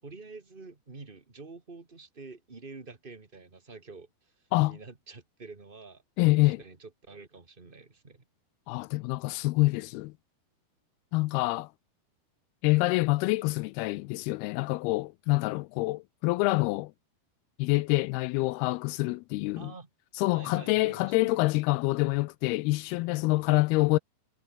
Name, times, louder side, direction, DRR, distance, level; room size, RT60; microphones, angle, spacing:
voice 1, 0.0-6.0 6.4-8.2 19.6-19.9 20.3-21.5 23.5-23.6, right 3 dB, 25° right, 1.2 m, -48 dB
voice 2, 6.2-6.6 8.7-10.1 11.1-11.7 12.6-16.9 17.6-19.7 20.2-24.0, left 21 dB, 80° left, 2.4 m, -26 dB
omnidirectional pair, 4.7 m